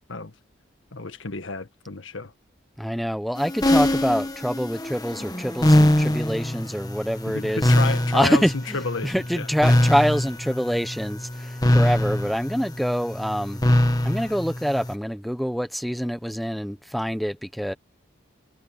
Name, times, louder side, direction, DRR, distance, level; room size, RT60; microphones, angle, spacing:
voice 1, 0.9-2.3 7.2-9.5, left 3 dB, 80° left, 1.7 m, -31 dB
voice 2, 2.8-13.6 14.0-17.7, equal, ahead, 1.0 m, -26 dB
sound 1, 3.4-14.9, left 1 dB, 20° left, 1.5 m, -23 dB
head